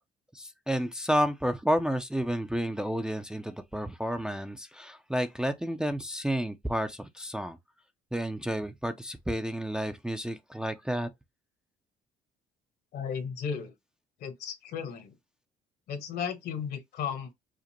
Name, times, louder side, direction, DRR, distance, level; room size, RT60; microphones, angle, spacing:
voice 1, 0.3-7.6 8.1-11.1, equal, 5° right, 0.5 m, -31 dB
voice 2, 12.9-13.7 14.2-15.1 15.9-17.3, left 7 dB, 70° left, 1.4 m, -35 dB
5.0 x 2.2 x 2.9 m
cardioid pair, 110°, 17 cm